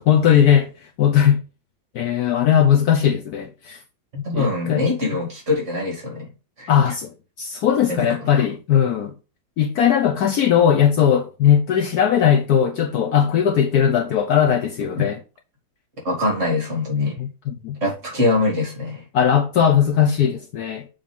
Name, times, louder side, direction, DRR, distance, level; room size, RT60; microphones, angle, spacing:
voice 1, 0.0-1.4 1.9-3.8 4.3-4.8 6.7-9.1 9.6-15.2 17.2-17.8 19.1-20.9, left 9 dB, 65° left, 1.1 m, -18 dB
voice 2, 4.1-6.3 6.6-6.7 7.9-8.3 16.0-17.1 17.8-19.0, left 2 dB, 40° right, 3.1 m, -23 dB
6.7 x 3.5 x 5.3 m
omnidirectional pair, 2.0 m